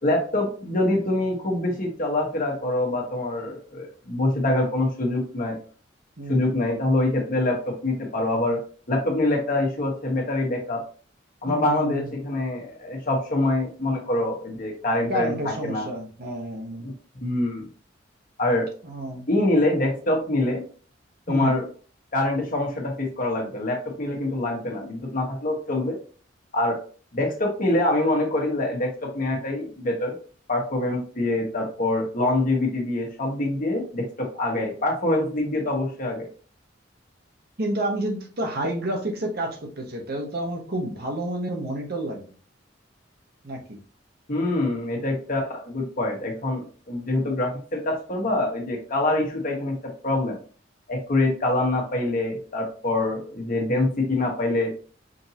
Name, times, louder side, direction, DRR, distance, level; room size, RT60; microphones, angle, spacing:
voice 1, 0.0-5.6 6.3-8.6 8.9-10.8 11.4-15.9 16.8-16.9 17.2-17.7 18.4-18.7 19.3-20.6 21.3-21.6 22.1-26.0 26.5-26.8 27.1-30.1 30.5-36.3 44.3-49.8 50.0-50.4 50.9-54.7, left 2 dB, 45° left, 0 dB, 1.2 m, -25 dB
voice 2, 11.5-12.1 15.1-16.9 18.8-19.3 21.3-21.6 37.6-42.2 43.4-43.8, right 1 dB, 55° right, 2 dB, 1.0 m, -30 dB
5.1 x 2.7 x 2.8 m, 0.40 s
head